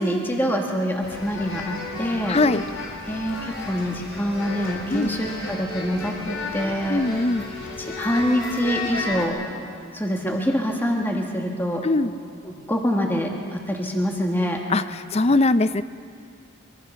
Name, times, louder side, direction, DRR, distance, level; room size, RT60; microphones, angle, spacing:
voice 1, 0.0-2.4 3.1-7.0 7.8-9.4 9.9-11.8 12.4-14.6, equal, 10° left, 0 dB, 1.9 m, -25 dB
sound 1, 1.0-9.2, left 2 dB, 75° left, 4.0 m, -33 dB
voice 2, 2.3-2.6 4.9-5.1 6.9-7.4 11.8-12.1 14.7-15.8, left 2 dB, 30° left, 14 dB, 0.5 m, -21 dB
24.5 x 24.0 x 5.9 m, 2.3 s
head